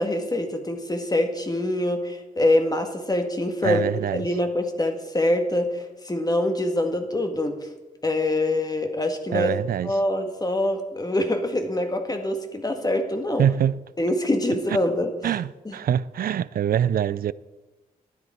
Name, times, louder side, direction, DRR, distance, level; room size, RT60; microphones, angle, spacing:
voice 1, 0.0-3.9 4.1-7.6 8.0-9.5 9.8-13.5 14.0-15.1 15.7-15.8, left 1 dB, 25° left, 1.8 m, -24 dB
voice 2, 3.6-4.3 9.3-10.0 13.4-13.8 15.2-17.3, right 9 dB, 70° right, 0.4 m, -24 dB
12.5 x 9.9 x 4.4 m
cardioid pair, 55°, 16 cm